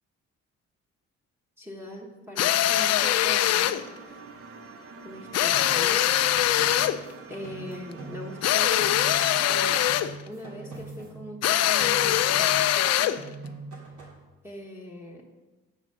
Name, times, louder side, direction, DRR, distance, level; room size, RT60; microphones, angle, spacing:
voice 1, 1.6-3.7 5.0-6.1 7.3-9.0 9.5-9.8 10.3-13.2 14.4-15.2, equal, 10° right, -2 dB, 1.3 m, -41 dB
sound 1, 2.4-3.8 5.3-7.0 8.4-10.2 11.4-13.2, left 12 dB, 60° left, 0.4 m, -22 dB
sound 2, 3.6-10.0, right 3 dB, 50° right, 0.8 m, -46 dB
sound 3, 5.5-8.5 8.8-11.5 11.8-12.9 13.2-14.2, right 3 dB, 75° right, 2.5 m, -43 dB
7.9 x 4.1 x 6.6 m, 1.2 s
cardioid pair, 90°, 30 cm